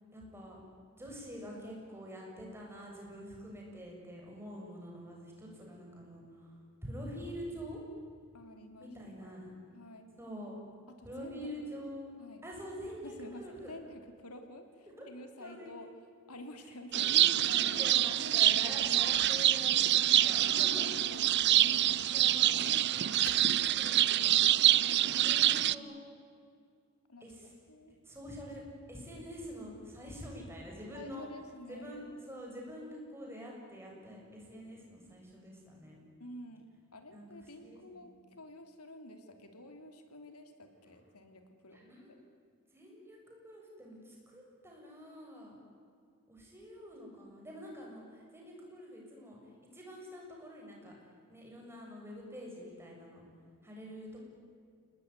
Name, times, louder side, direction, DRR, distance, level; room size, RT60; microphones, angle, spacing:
voice 1, 0.1-0.6 1.0-7.8 8.8-9.5 10.2-10.6 11.0-12.1 12.4-13.8 15.0-15.1 15.4-15.9 16.6-16.7 17.5-20.9 22.1-22.7 23.1-25.9 27.2-27.5 28.0-28.6 28.9-31.3 31.7-36.0 37.1-37.3 37.6-38.1 41.7-42.1 42.7-45.6 46.3-49.4 49.7-51.0 51.3-53.2 53.6-54.2, equal, 10° right, -2 dB, 7.2 m, -46 dB
voice 2, 8.3-8.9 9.2-9.4 9.7-10.1 10.9-11.6 12.2-12.5 13.0-15.9 16.3-18.2 20.4-22.1 25.5-26.0 27.1-27.3 27.7-28.0 30.9-32.0 36.2-41.8, left 1 dB, 90° left, 6 dB, 3.1 m, -50 dB
sound 1, 16.9-25.7, right 12 dB, 50° right, 0.6 m, -26 dB
sound 2, 17.4-23.5, left 4 dB, 45° left, 2.4 m, -52 dB
28.5 x 19.5 x 9.7 m, 2.3 s
head